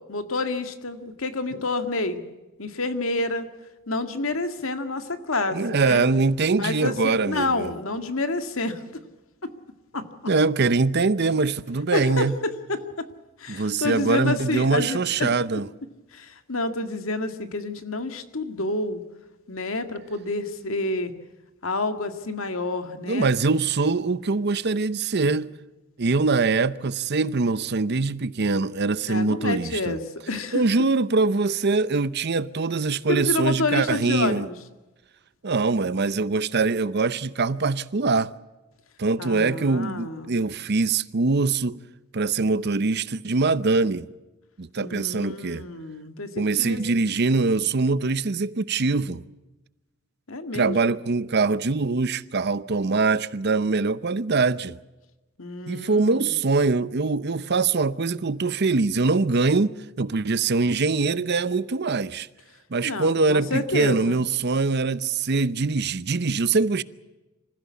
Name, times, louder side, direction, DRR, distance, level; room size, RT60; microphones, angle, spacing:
voice 1, 0.1-2.2 2.6-3.5 3.9-6.0 6.6-8.8 9.9-10.1 11.9-12.8 13.4-15.3 16.1-19.0 19.5-21.1 21.6-23.3 29.1-30.0 30.3-30.6 33.1-34.6 39.2-40.3 44.8-46.8 50.3-50.8 55.4-56.3 62.8-64.2, left 2 dB, 70° left, 2.0 m, -28 dB
voice 2, 5.5-7.7 10.3-12.3 13.5-15.7 23.1-25.5 26.0-30.0 30.5-34.5 35.4-38.3 39.0-41.8 42.1-44.1 44.6-45.6 46.4-49.2 50.5-54.8 55.7-62.3 62.7-66.8, right 3 dB, 50° right, 0.7 m, -23 dB
26.0 x 15.5 x 8.4 m
head